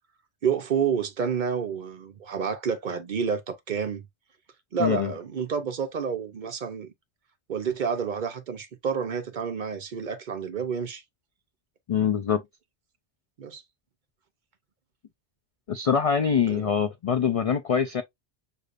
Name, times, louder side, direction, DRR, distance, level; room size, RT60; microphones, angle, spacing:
voice 1, 0.4-4.1 4.7-6.9 7.5-11.0 13.4-13.6 16.5-16.7, right 6 dB, 55° right, 0.6 m, -29 dB
voice 2, 4.8-5.1 11.9-12.4 15.7-18.0, left 7 dB, 65° left, 0.3 m, -24 dB
6.5 x 2.5 x 2.4 m
omnidirectional pair, 1.1 m